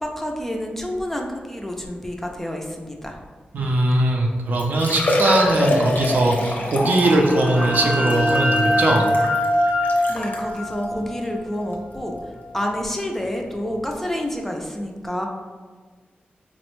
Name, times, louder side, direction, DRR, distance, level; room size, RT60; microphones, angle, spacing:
voice 1, 0.0-3.2 10.1-12.2 12.5-15.3, equal, 10° left, 1 dB, 0.3 m, -28 dB
voice 2, 3.5-9.1, right 1 dB, 60° right, 1 dB, 0.5 m, -20 dB
Liquid, 4.1-4.2 4.6-10.5 11.2-11.3 11.7-11.8 13.5-13.6 13.7-13.8, left 1 dB, 60° left, 0.5 m, -26 dB
sound 1, 6.9-12.4, left 1 dB, 20° right, 0.7 m, -24 dB
4.0 x 2.0 x 3.0 m, 1.5 s
wide cardioid pair, 125°, 3 cm